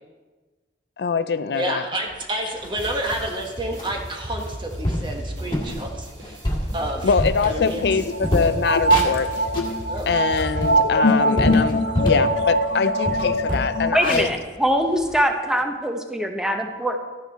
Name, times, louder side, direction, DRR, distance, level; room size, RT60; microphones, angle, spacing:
voice 1, 1.0-1.9 7.0-9.5 10.1-14.3, left 5 dB, 65° left, 13 dB, 0.4 m, -23 dB
voice 2, 1.5-6.4 6.7-7.1 7.4-7.8 9.9-10.1 12.0-12.1, right 1 dB, 30° right, 2 dB, 1.4 m, -29 dB
sound 1, 2.1-2.2 2.6-3.4 3.8-4.0 4.5-4.6 4.8-5.1 5.5-5.8 6.2-7.9 8.2-9.8 10.2-12.3 12.7-12.8 13.0-15.2, equal, 25° left, 1.8 m, -27 dB
sound 2, 2.8-11.0, right 1 dB, 90° right, 3.1 m, -36 dB
sound 3, 7.3-13.9, equal, 85° left, 0.8 m, -22 dB
voice 3, 13.9-17.0, equal, 5° right, 4 dB, 0.9 m, -22 dB
13.0 x 9.5 x 4.1 m, 1.3 s
head